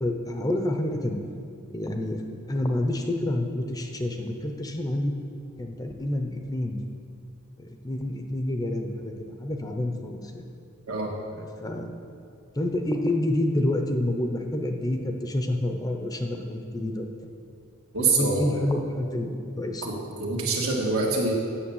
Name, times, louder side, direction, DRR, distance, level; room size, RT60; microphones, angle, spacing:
voice 1, 0.0-1.2 1.7-2.2 2.5-5.1 5.6-6.8 7.6-10.4 11.3-12.1 12.5-17.1 18.0-19.9, left 1 dB, 15° left, 3 dB, 0.8 m, -28 dB
voice 2, 17.9-18.4 19.8-19.9 20.2-21.3, right 3 dB, 80° right, -2 dB, 1.9 m, -25 dB
8.7 x 7.1 x 7.2 m, 2.4 s
head